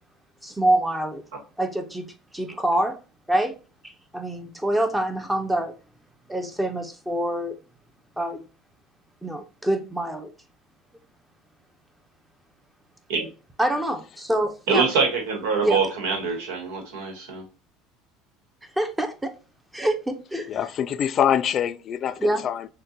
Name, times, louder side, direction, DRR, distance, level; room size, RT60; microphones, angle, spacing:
voice 1, 0.4-1.2 1.6-2.1 2.3-3.0 3.3-3.5 3.8-5.7 6.3-7.6 8.2-8.4 9.2-10.3 13.6-14.9 15.6-15.8 18.8-19.3 19.7-20.6 22.2-22.4, right 1 dB, 10° right, 0.7 m, -25 dB
voice 2, 14.7-17.4, right 5 dB, 80° right, 1.2 m, -24 dB
voice 3, 20.5-22.7, left 9 dB, 45° left, 0.3 m, -24 dB
6.4 x 2.2 x 2.7 m
supercardioid pair, 105°, 0 cm